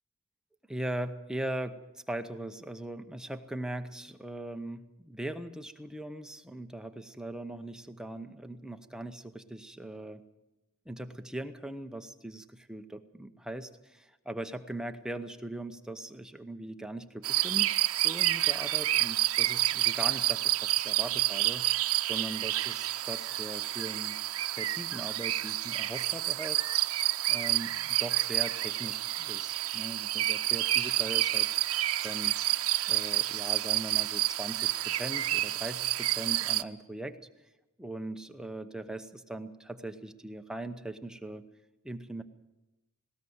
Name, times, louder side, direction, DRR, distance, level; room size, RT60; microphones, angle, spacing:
voice 1, 0.7-10.2 10.9-17.7 18.0-21.7 22.1-24.1 24.5-26.7 27.3-31.5 32.0-32.3 32.9-37.2 37.8-41.4 41.8-42.2, right 1 dB, 5° right, 7 dB, 0.8 m, -40 dB
sound 1, 17.2-36.6, right 15 dB, 80° right, 0.7 m, -29 dB
19.0 x 18.0 x 7.9 m, 0.99 s
head